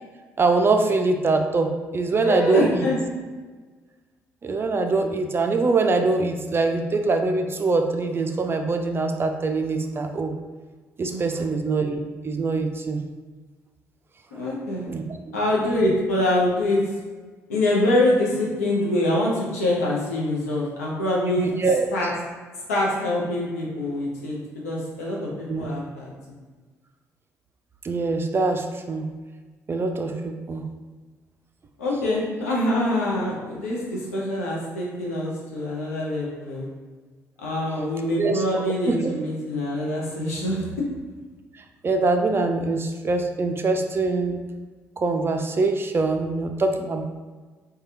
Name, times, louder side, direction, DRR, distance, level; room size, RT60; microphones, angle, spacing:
voice 1, 0.4-2.9 4.4-10.3 11.0-13.0 14.9-15.4 21.4-21.9 25.5-25.7 27.8-29.1 29.7-30.6 38.2-38.4 38.9-39.1 41.8-44.4 45.0-47.0, right 3 dB, 30° right, 5 dB, 0.3 m, -23 dB
voice 2, 2.2-3.0 11.1-11.5 14.4-14.9 15.3-16.8 17.5-21.5 21.9-22.1 22.7-24.4 24.6-26.1 30.0-30.2 31.8-36.7 37.4-40.7, left 1 dB, 85° left, -4 dB, 0.5 m, -24 dB
3.3 x 2.2 x 2.7 m, 1.4 s
figure-of-eight pair, 45°, 8 cm